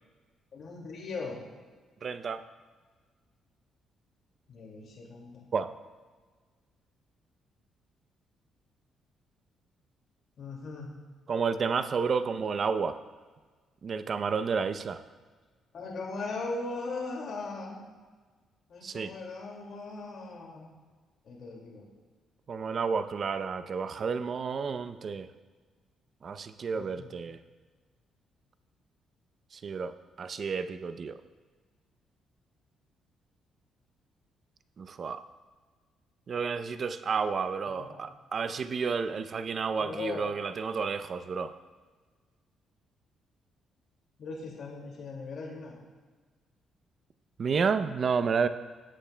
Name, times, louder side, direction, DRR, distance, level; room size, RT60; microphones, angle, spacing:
voice 1, 0.5-1.4 4.5-5.5 10.4-11.0 15.7-17.8 18.7-20.7 21.2-21.9 26.7-27.1 37.8-38.0 39.8-40.3 44.2-45.7, left 3 dB, 60° left, -2 dB, 2.2 m, -39 dB
voice 2, 2.0-2.4 5.5-5.7 11.3-13.0 13.8-15.0 18.8-19.1 22.5-25.3 26.2-27.4 29.5-31.2 34.8-35.2 36.3-41.5 47.4-48.5, right 5 dB, 50° right, 11 dB, 0.6 m, -31 dB
17.0 x 8.9 x 2.2 m, 1.4 s
cardioid pair, 90°, 0 cm